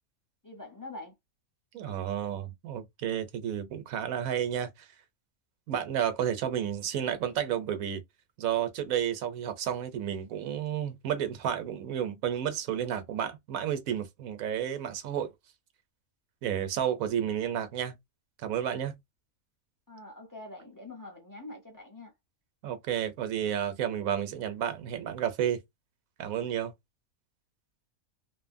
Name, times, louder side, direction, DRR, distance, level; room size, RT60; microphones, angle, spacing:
voice 1, 0.4-1.1 19.9-22.1, left 2 dB, 25° left, 0.5 m, -45 dB
voice 2, 1.7-4.9 5.7-8.0 8.4-15.3 16.4-17.9 18.4-18.9 22.6-25.6 26.2-26.7, right 9 dB, 75° right, 1.1 m, -31 dB
2.8 x 2.6 x 2.6 m
omnidirectional pair, 1.5 m